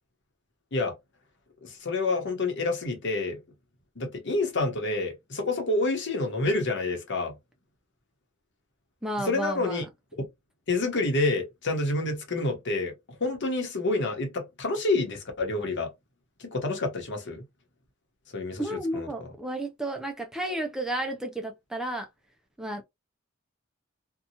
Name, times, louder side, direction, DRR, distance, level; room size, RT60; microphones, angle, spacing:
voice 1, 1.6-3.4 4.0-7.3 9.2-9.8 10.7-12.9 13.2-15.9 16.4-17.4 18.3-19.3, left 2 dB, 60° left, 0.9 m, -28 dB
voice 2, 9.0-9.9 18.6-22.1 22.6-22.8, right 1 dB, 5° right, 0.4 m, -32 dB
2.7 x 2.2 x 2.7 m
head